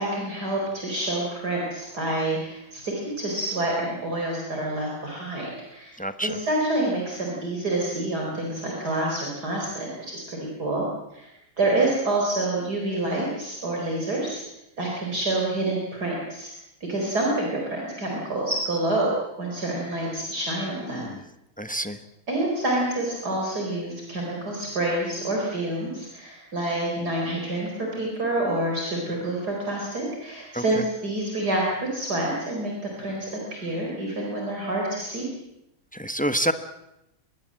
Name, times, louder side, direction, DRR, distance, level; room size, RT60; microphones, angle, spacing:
voice 1, 0.0-10.8 11.1-11.3 11.6-14.4 14.8-16.5 16.9-21.1 22.3-31.6 31.9-32.7 33.0-35.3, right 2 dB, 50° right, -1 dB, 5.0 m, -27 dB
voice 2, 6.0-6.4 20.9-21.2 21.6-22.0 30.5-30.8 35.9-36.5, equal, 10° left, 10 dB, 0.6 m, -28 dB
24.5 x 20.5 x 7.6 m, 0.85 s
omnidirectional pair, 2.1 m